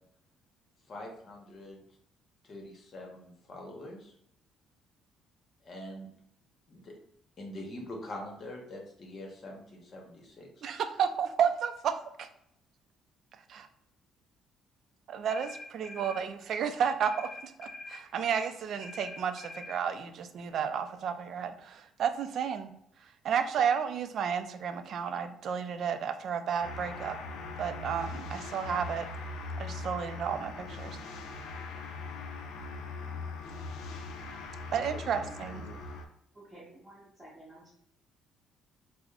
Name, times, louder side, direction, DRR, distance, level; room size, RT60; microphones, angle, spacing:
voice 1, 0.9-1.8 2.4-4.1 5.6-6.1 6.7-6.9 7.4-10.5, left 1 dB, 40° left, 0 dB, 1.0 m, -44 dB
voice 2, 10.6-11.9 12.2-12.3 13.5-13.7 15.1-22.7 23.2-27.2 27.6-29.1 29.6-31.0 34.7-35.7, right 7 dB, 60° right, 8 dB, 0.3 m, -32 dB
sound 1, 15.3-16.3 17.0-18.0 18.8-19.8, left 2 dB, 25° left, 0.6 m, -44 dB
sound 2, 26.6-36.1, left 3 dB, 90° left, 0.4 m, -40 dB
voice 3, 34.9-35.3 35.6-35.8 36.5-37.7, right 1 dB, 5° right, -10 dB, 1.3 m, -50 dB
4.8 x 2.0 x 2.4 m, 0.74 s
cardioid pair, 120°, 0 cm